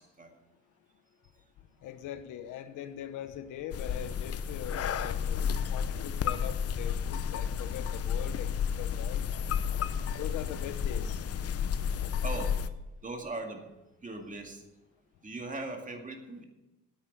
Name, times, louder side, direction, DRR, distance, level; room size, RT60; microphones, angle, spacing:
voice 1, 1.8-9.3 10.2-11.2, left 10 dB, 90° left, 11 dB, 1.0 m, -42 dB
sound 1, 3.7-12.7, left 7 dB, 50° left, 0.7 m, -32 dB
voice 2, 12.2-12.5 13.0-13.7 14.0-14.6 15.2-16.4, right 2 dB, 25° right, 4 dB, 2.2 m, -39 dB
9.7 x 8.6 x 7.4 m, 0.98 s
cardioid pair, 90°, 30 cm